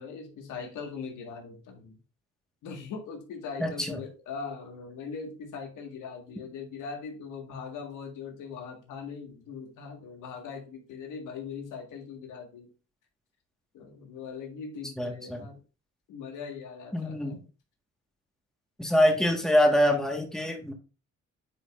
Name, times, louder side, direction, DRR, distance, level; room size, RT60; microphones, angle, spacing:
voice 1, 0.0-2.0 2.6-12.7 13.7-15.6 16.1-17.4, left 5 dB, 85° left, 3 dB, 1.7 m, -40 dB
voice 2, 3.6-4.0 15.0-15.4 16.9-17.4 18.8-20.7, left 1 dB, ahead, 3 dB, 1.5 m, -25 dB
9.0 x 4.9 x 2.5 m, 0.34 s
cardioid pair, 90°, 30 cm